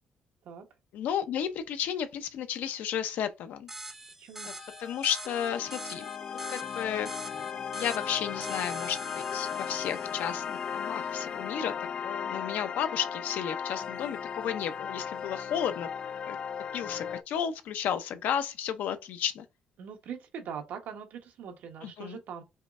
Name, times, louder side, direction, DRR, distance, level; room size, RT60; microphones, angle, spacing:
voice 1, 0.9-3.7 4.4-4.5 4.8-6.1 6.5-7.1 7.8-11.7 12.0-15.9 16.2-16.4 16.7-19.4 21.8-22.2, left 9 dB, 80° left, 0.7 m, -33 dB
sound 1, 3.7-10.8, right 2 dB, 10° right, 0.6 m, -45 dB
voice 2, 4.2-4.5 19.8-22.4, right 7 dB, 75° right, 1.2 m, -42 dB
sound 2, 4.4-17.2, left 7 dB, 40° left, 0.3 m, -36 dB
5.6 x 3.1 x 2.5 m
cardioid pair, 180°, 3 cm